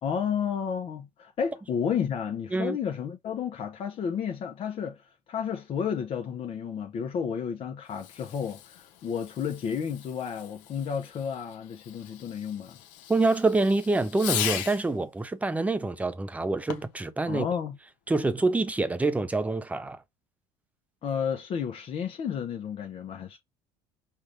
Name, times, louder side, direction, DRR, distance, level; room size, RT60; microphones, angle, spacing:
voice 1, 0.0-12.8 17.3-17.8 21.0-23.4, left 7 dB, 45° left, 0.8 m, -32 dB
Fireworks, 7.9-15.0 16.6-17.1, left 11 dB, 80° left, 0.9 m, -38 dB
voice 2, 13.1-17.5 18.1-20.0, right 3 dB, 10° right, 0.6 m, -26 dB
5.6 x 2.4 x 3.2 m
cardioid pair, 115°, 13 cm